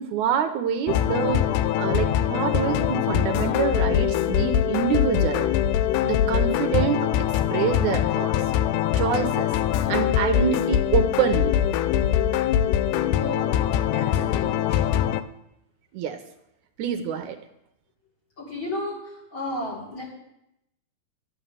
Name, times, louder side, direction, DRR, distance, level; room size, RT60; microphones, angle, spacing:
voice 1, 0.0-5.5 6.0-7.1 7.5-8.3 9.0-9.5 9.9-11.6 15.9-16.2 16.8-17.4, right 8 dB, 80° right, 6 dB, 2.0 m, -26 dB
sound 1, 0.9-15.2, left 10 dB, 90° left, 2.2 m, -23 dB
voice 2, 13.1-14.8 18.4-19.0 19.3-20.0, left 2 dB, 35° left, -5 dB, 4.5 m, -33 dB
12.0 x 7.3 x 6.7 m, 0.83 s
omnidirectional pair, 3.6 m